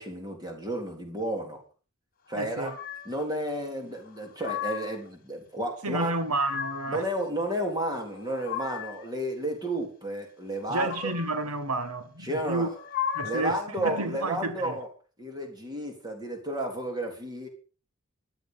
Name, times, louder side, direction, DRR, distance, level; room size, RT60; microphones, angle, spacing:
voice 1, 0.0-1.6 2.3-2.7 3.1-6.1 6.9-11.1 12.2-12.8 13.2-14.9 15.2-17.5, right 1 dB, 20° right, 3.5 m, -32 dB
voice 2, 2.3-2.8 5.8-7.1 10.7-12.7 13.1-14.8, right 2 dB, 90° right, 1.7 m, -31 dB
sound 1, 2.6-3.2 4.1-5.1 6.0-7.0 8.0-9.1 10.6-11.5 12.6-13.6, left 9 dB, 40° left, 2.1 m, -36 dB
15.0 x 11.5 x 5.7 m
head